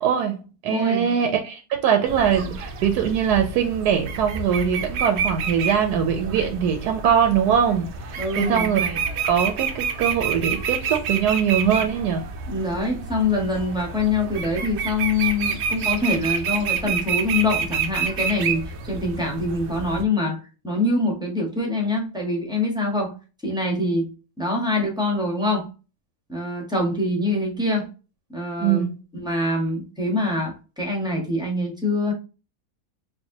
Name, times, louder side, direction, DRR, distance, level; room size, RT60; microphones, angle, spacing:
voice 1, 0.0-9.0 9.2-12.3 28.6-29.0, right 8 dB, 80° right, 1.1 m, -22 dB
voice 2, 0.7-1.1 8.2-8.7 12.5-20.4 20.6-23.1 23.4-24.1 24.4-25.7 26.3-27.9 28.3-28.8 29.1-32.1, left 2 dB, 5° right, 0.9 m, -24 dB
sound 1, 2.1-20.0, right 6 dB, 60° right, 0.7 m, -29 dB
4.5 x 2.5 x 2.7 m
omnidirectional pair, 1.7 m